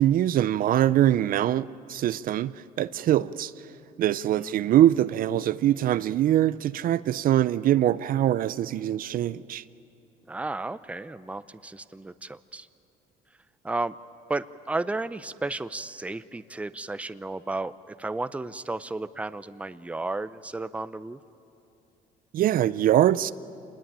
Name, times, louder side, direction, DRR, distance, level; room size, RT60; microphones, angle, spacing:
voice 1, 0.0-3.5 4.0-9.6 22.3-23.3, right 12 dB, 55° right, 0.5 m, -23 dB
voice 2, 4.3-4.7 10.3-12.7 13.6-13.9 14.3-21.2, right 2 dB, 10° right, 0.6 m, -33 dB
27.5 x 20.5 x 8.9 m
cardioid pair, 110°, 17 cm